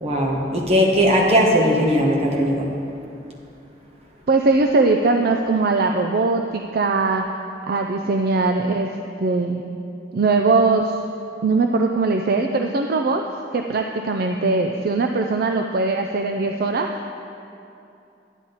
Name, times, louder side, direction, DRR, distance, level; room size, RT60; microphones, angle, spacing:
voice 1, 0.0-2.7, equal, 35° right, -1 dB, 1.4 m, -18 dB
voice 2, 4.3-7.3 7.7-8.9 9.2-9.8 10.1-11.0 11.4-13.2 13.5-16.9, right 3 dB, 55° right, 3 dB, 0.4 m, -20 dB
10.0 x 9.8 x 4.0 m, 2.7 s
head